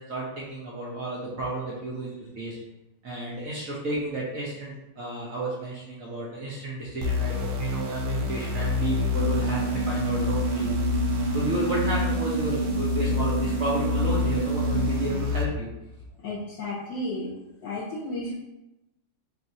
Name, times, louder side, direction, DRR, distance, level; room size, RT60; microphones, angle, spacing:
voice 1, 0.0-2.6 3.0-10.7 11.3-15.7, right 2 dB, 65° right, -5 dB, 0.8 m, -32 dB
sound 1, 7.0-15.5, left 6 dB, 85° right, 1.5 m, -28 dB
sound 2, 9.1-15.1, right 6 dB, 40° left, 1.4 m, -29 dB
voice 2, 16.2-17.3 17.6-18.3, left 1 dB, 65° left, -6 dB, 1.2 m, -33 dB
4.0 x 2.4 x 4.0 m, 0.93 s
omnidirectional pair, 2.3 m